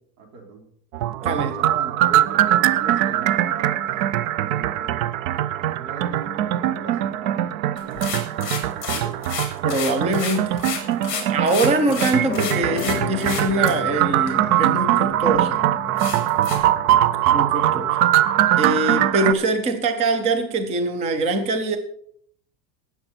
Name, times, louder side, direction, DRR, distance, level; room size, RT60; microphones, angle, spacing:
voice 1, 0.2-0.6 1.2-5.1 5.6-9.2 11.2-12.1, right 4 dB, 75° right, 2 dB, 4.0 m, -39 dB
sound 1, 0.9-19.3, right 12 dB, 55° right, 0.6 m, -22 dB
voice 2, 1.2-1.5 9.6-10.6 11.3-15.6 17.3-18.0 18.6-21.8, right 2 dB, 15° right, 8 dB, 0.5 m, -23 dB
sound 2, 7.8-12.9 13.2-13.7 14.3-14.4 14.9-15.0 15.3-15.4 16.0-16.6, left 7 dB, 25° left, 3.5 m, -30 dB
Piano, 12.3-18.8, left 13 dB, 60° left, 0.8 m, -35 dB
18.5 x 7.1 x 4.4 m, 0.66 s
supercardioid pair, 165°, 50 cm